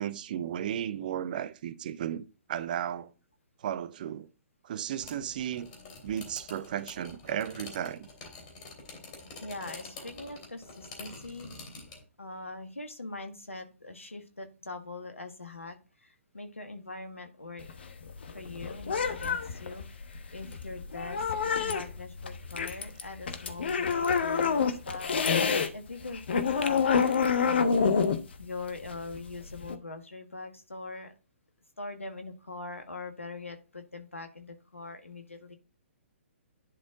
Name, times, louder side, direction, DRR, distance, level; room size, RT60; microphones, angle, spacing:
voice 1, 0.0-3.1 3.6-4.3 4.6-5.7 6.0-8.1, right 10 dB, 40° right, 0.6 m, -34 dB
sound 1, 5.0-12.0, left 3 dB, 35° left, 2.9 m, -47 dB
voice 2, 9.4-11.5 12.2-17.7 18.3-25.1 25.5-28.0 28.4-31.1 31.8-35.6, left 3 dB, 80° left, 1.6 m, -42 dB
sound 2, 17.6-25.7 26.0-29.8, left 6 dB, 55° left, 1.0 m, -28 dB
11.0 x 4.3 x 3.7 m
figure-of-eight pair, 125°, 7 cm